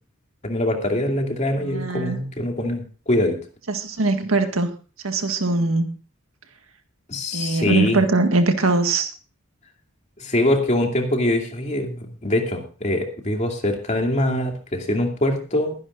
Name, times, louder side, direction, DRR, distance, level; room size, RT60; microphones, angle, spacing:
voice 1, 0.4-3.4 7.1-8.0 10.2-15.7, left 1 dB, 35° left, 2 dB, 2.5 m, -23 dB
voice 2, 1.6-2.2 3.7-4.7 5.0-6.0 7.3-9.1, right 3 dB, 70° right, 6 dB, 1.8 m, -21 dB
22.5 x 10.5 x 2.5 m, 0.35 s
head